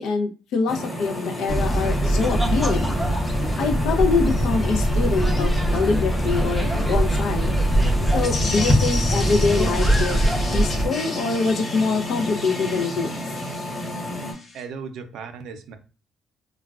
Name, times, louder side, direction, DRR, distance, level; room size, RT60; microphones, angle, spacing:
voice 1, 0.0-3.0 3.6-7.5 8.1-10.2 10.5-13.1, left 4 dB, 75° left, 5 dB, 0.5 m, -24 dB
sound 1, 0.7-14.3, left 1 dB, 25° left, 1.2 m, -32 dB
sound 2, 1.5-10.9, right 1 dB, 5° left, 0.6 m, -22 dB
sound 3, 8.2-14.6, left 2 dB, 45° left, 0.9 m, -34 dB
voice 2, 14.5-15.8, right 5 dB, 75° right, 7 dB, 0.5 m, -36 dB
3.2 x 2.2 x 2.3 m, 0.35 s
cardioid pair, 90°, 0 cm